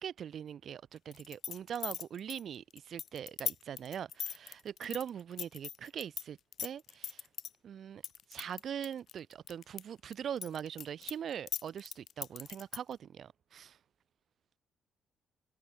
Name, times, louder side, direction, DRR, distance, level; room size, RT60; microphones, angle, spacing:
voice 1, 0.0-7.3 7.6-8.0 8.3-13.8, right 9 dB, 60° right, 0.6 m, -42 dB
sound 1, 1.1-6.2 6.5-7.5 8.0-9.8 10.1-12.9, left 9 dB, 65° left, 0.8 m, -39 dB
cardioid pair, 90°, 0 cm